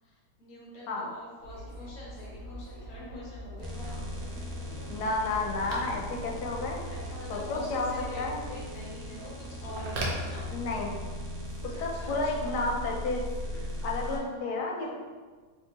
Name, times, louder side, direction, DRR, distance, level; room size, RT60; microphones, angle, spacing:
voice 1, 0.0-4.9 6.9-10.5 11.9-12.9 14.0-14.9, left 1 dB, 65° left, -5 dB, 1.2 m, -45 dB
sound 1, 1.4-14.2, right 1 dB, 45° left, 1.0 m, -45 dB
sound 2, 3.6-14.2, left 1 dB, 85° right, 1.3 m, -39 dB
Telephone, 3.7-11.1, right 1 dB, 70° right, 1.0 m, -43 dB
voice 2, 4.9-6.8 7.3-7.9 8.2-8.4 10.5-11.0 11.6-13.2 13.8-14.9, left 3 dB, 90° left, 0 dB, 1.2 m, -31 dB
3.6 x 2.6 x 2.7 m, 1.5 s
omnidirectional pair, 1.7 m